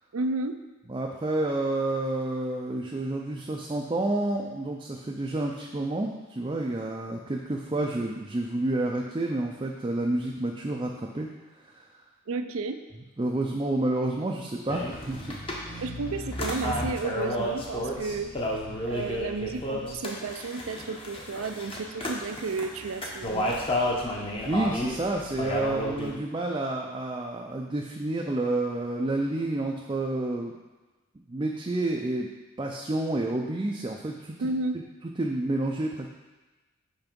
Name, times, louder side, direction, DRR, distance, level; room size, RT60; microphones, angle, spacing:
voice 1, 0.1-0.6 12.3-12.8 15.8-18.4 18.8-23.6 34.4-34.8, right 3 dB, 80° right, 9 dB, 0.5 m, -32 dB
voice 2, 0.9-11.3 11.8-11.9 13.2-15.8 24.4-30.5 31.3-32.3 32.6-34.4 35.2-36.1, right 2 dB, 20° right, -1 dB, 0.4 m, -29 dB
sound 1, 14.7-26.1, left 1 dB, 25° left, 0.8 m, -32 dB
5.8 x 4.6 x 5.2 m, 1.2 s
head